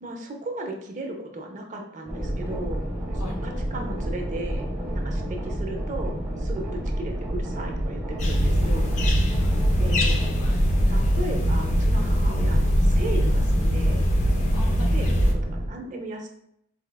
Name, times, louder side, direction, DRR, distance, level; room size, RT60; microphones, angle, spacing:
voice 1, 0.0-2.9 3.2-4.7 4.9-9.3 9.8-10.2 10.9-14.0 14.9-16.3, right 1 dB, 35° right, 2 dB, 0.4 m, -36 dB
sound 1, 2.1-15.7, right 1 dB, 10° right, 1.0 m, -30 dB
voice 2, 3.1-3.6 9.3-10.1 10.4-10.7 14.5-15.1, left 1 dB, 80° left, 0 dB, 0.8 m, -42 dB
sound 2, 8.2-15.3, equal, 35° left, 0.3 m, -21 dB
4.0 x 2.2 x 2.2 m, 0.73 s
head